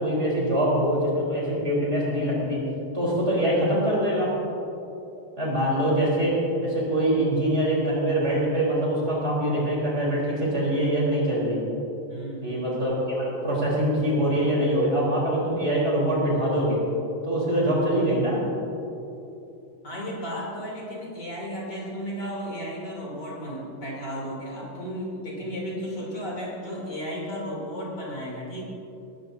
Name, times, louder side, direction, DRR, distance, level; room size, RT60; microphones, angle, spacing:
voice 1, 0.0-2.6 2.9-4.3 5.4-11.6 12.4-16.8 17.2-18.4, right 1 dB, 20° right, -6 dB, 4.0 m, -24 dB
voice 2, 12.1-12.5 19.8-28.6, equal, 35° left, -5 dB, 3.7 m, -34 dB
20.5 x 15.0 x 2.8 m, 3.0 s
omnidirectional pair, 3.5 m